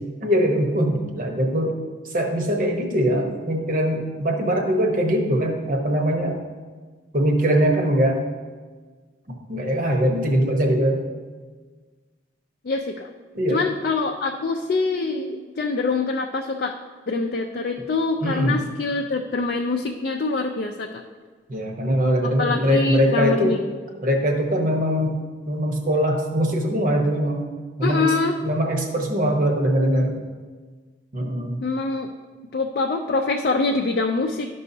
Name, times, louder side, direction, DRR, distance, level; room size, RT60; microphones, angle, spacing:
voice 1, 0.2-1.7 2.0-6.4 7.1-8.2 9.5-11.0 13.3-13.6 18.2-18.6 21.5-23.6 24.0-25.2 25.5-27.5 27.8-28.1 28.4-30.2 31.1-31.6, equal, 45° right, 2 dB, 1.0 m, -22 dB
voice 2, 12.6-13.1 13.5-16.7 17.1-21.0 22.4-23.6 27.8-28.4 31.6-32.1 32.5-34.5, left 3 dB, 50° left, 2 dB, 0.4 m, -24 dB
12.0 x 5.4 x 2.7 m, 1.4 s
head